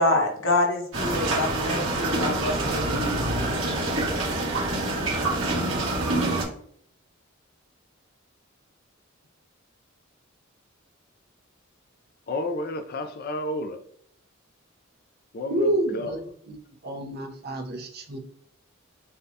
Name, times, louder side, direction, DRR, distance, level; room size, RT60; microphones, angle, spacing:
voice 1, 0.0-3.2, left 2 dB, 70° left, -1 dB, 1.3 m, -26 dB
sound 1, 0.9-6.4, right 2 dB, 70° right, 1.6 m, -26 dB
voice 2, 12.3-13.8 15.3-16.2, left 1 dB, 50° left, 7 dB, 0.5 m, -31 dB
voice 3, 15.5-16.3 16.8-18.2, right 1 dB, 50° right, 3 dB, 0.8 m, -28 dB
6.8 x 2.3 x 2.7 m, 0.63 s
head